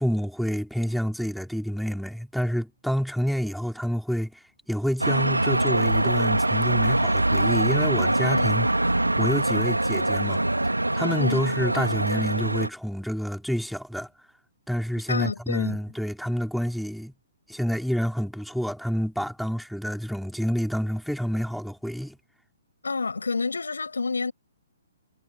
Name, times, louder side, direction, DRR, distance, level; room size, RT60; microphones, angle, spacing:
voice 1, 0.0-4.4 4.7-8.7 8.9-10.4 10.9-14.1 14.7-17.1 17.5-22.2, equal, ahead, 2.9 m, -28 dB
sound 1, 5.0-12.7, right 1 dB, 85° right, 2.9 m, -23 dB
voice 2, 15.1-15.8 22.8-24.3, left 4 dB, 70° left, 6.2 m, -28 dB
figure-of-eight pair, 125°, 0 cm